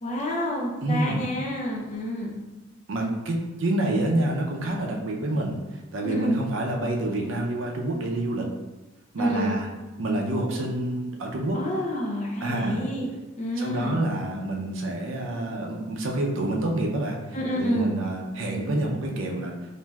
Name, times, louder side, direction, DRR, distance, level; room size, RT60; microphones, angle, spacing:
voice 1, 0.0-2.4 6.0-6.4 9.2-9.6 11.5-13.1 13.4-14.0 17.3-17.9, equal, 35° left, -2 dB, 0.4 m, -28 dB
voice 2, 0.8-1.2 2.9-5.6 5.9-8.5 9.1-9.7 10.0-11.6 12.4-12.8 13.6-19.6, right 1 dB, 70° right, 0 dB, 0.5 m, -27 dB
3.1 x 2.6 x 2.2 m, 1.1 s
head